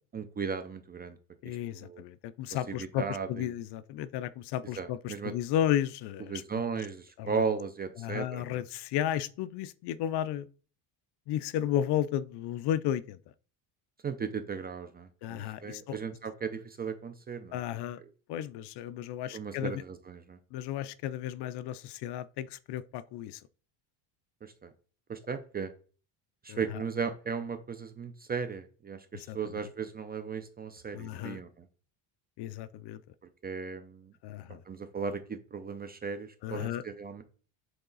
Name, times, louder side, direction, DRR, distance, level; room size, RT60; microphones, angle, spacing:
voice 1, 0.1-1.2 1.4-2.0 2.7-3.5 4.8-5.3 6.3-8.6 14.0-17.6 19.3-20.4 24.4-24.7 25.1-25.7 26.4-31.6 33.4-34.1 34.7-37.2, right 5 dB, 20° right, 0.4 m, -36 dB
voice 2, 1.4-6.4 7.2-7.4 8.0-10.5 11.3-13.2 15.2-16.0 17.5-18.0 18.3-19.8 20.5-23.4 26.5-26.8 29.1-29.4 30.9-31.4 32.4-33.0 34.2-34.6 36.4-36.8, left 11 dB, 60° left, 0.5 m, -33 dB
8.1 x 3.9 x 3.9 m
cardioid pair, 150°, 47 cm